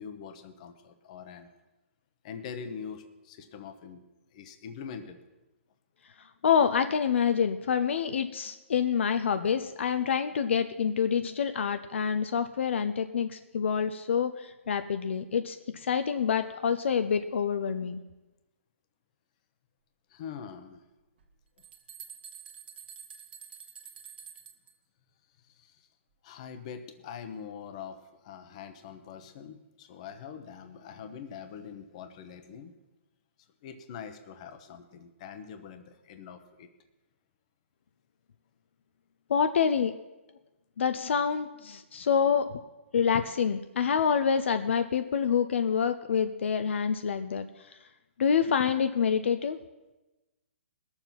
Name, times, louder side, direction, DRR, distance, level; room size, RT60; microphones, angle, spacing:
voice 1, 0.0-1.5 2.2-4.0 4.3-5.2 20.1-20.8 25.4-25.9 26.2-32.8 33.6-36.7, left 7 dB, 30° left, 8 dB, 1.0 m, -43 dB
voice 2, 6.4-18.0 39.3-39.9 40.8-42.6 42.9-47.5 48.2-49.6, left 7 dB, 60° left, 9 dB, 0.6 m, -27 dB
sound 1, 21.2-24.7, right 7 dB, 45° right, 1.4 m, -48 dB
19.5 x 7.2 x 5.8 m, 1.1 s
hypercardioid pair, 165°, 7 cm